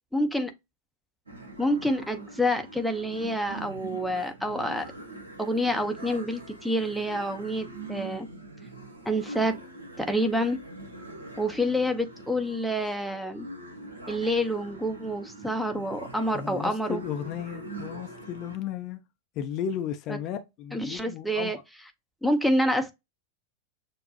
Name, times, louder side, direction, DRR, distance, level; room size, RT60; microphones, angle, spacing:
voice 1, 0.1-0.5 1.6-4.9 5.4-8.3 9.1-9.6 10.0-10.6 11.4-13.5 14.1-17.0 20.1-20.2 20.7-21.6 22.2-22.9, equal, ahead, 0.7 m, -27 dB
sound 1, 1.3-18.6, right 2 dB, 80° right, 1.0 m, -43 dB
voice 2, 16.3-19.0 19.4-21.5, left 9 dB, 40° left, 0.5 m, -34 dB
6.5 x 2.2 x 2.7 m
figure-of-eight pair, 90°, 0 cm